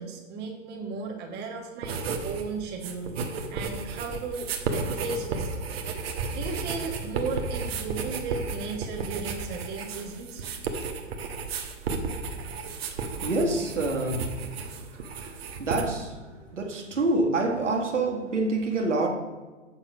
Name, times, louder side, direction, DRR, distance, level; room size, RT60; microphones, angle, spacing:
voice 1, 0.0-3.2 3.5-5.6 6.3-10.4, right 4 dB, 25° right, 1 dB, 1.4 m, -35 dB
sound 1, 1.8-2.5 2.7-15.8, right 4 dB, 55° right, 1.2 m, -33 dB
voice 2, 13.2-14.3 14.9-19.1, right 2 dB, 75° right, 2 dB, 1.7 m, -27 dB
7.4 x 6.6 x 5.0 m, 1.3 s
figure-of-eight pair, 110°, 37 cm